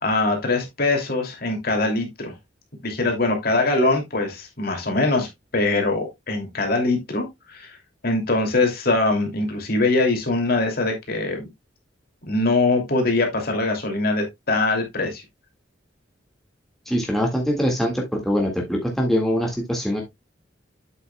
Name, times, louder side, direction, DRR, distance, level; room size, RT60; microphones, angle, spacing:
voice 1, 0.0-2.3 2.8-5.3 5.5-7.8 8.0-11.4 12.3-15.2, left 2 dB, 55° left, 2.6 m, -22 dB
voice 2, 16.9-20.0, equal, ahead, 1.9 m, -23 dB
8.0 x 8.0 x 2.2 m
head